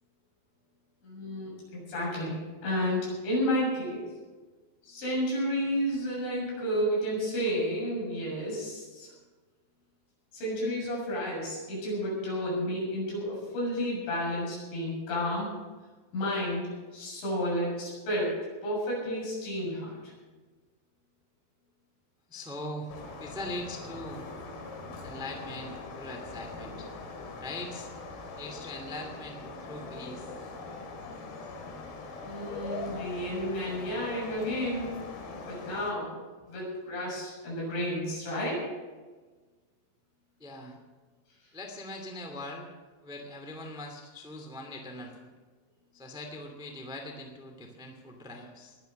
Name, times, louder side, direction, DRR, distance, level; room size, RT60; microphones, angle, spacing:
voice 1, 1.0-4.1 4.8-9.1 10.3-15.5 16.1-20.1 32.2-34.9 35.5-36.2 36.5-38.6, equal, 85° left, -4 dB, 9.6 m, -31 dB
voice 2, 22.3-22.9 23.2-24.2 25.0-26.9 27.4-27.9 28.4-30.3 40.4-40.8 41.5-42.7 43.0-45.3 45.9-48.8, left 1 dB, 5° right, 3 dB, 0.6 m, -41 dB
sound 1, 22.9-35.9, left 3 dB, 60° left, 3.4 m, -42 dB
21.0 x 9.2 x 6.6 m, 1.3 s
omnidirectional pair, 5.3 m